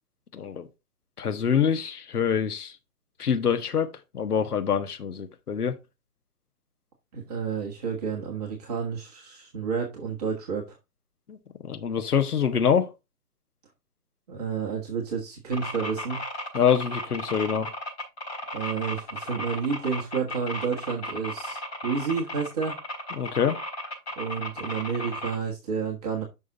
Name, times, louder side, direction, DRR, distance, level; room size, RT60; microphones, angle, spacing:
voice 1, 0.3-0.7 1.2-2.8 3.2-3.9 4.1-5.8 11.3-11.4 11.6-12.9 16.5-17.7 23.2-23.6, left 7 dB, 70° left, 1.5 m, -25 dB
voice 2, 7.1-10.8 14.3-16.2 18.5-22.8 24.2-26.2, right 6 dB, 25° right, 1.6 m, -30 dB
sound 1, 15.5-25.3, equal, 40° left, 4.2 m, -35 dB
7.2 x 6.2 x 3.9 m
hypercardioid pair, 155°, 47 cm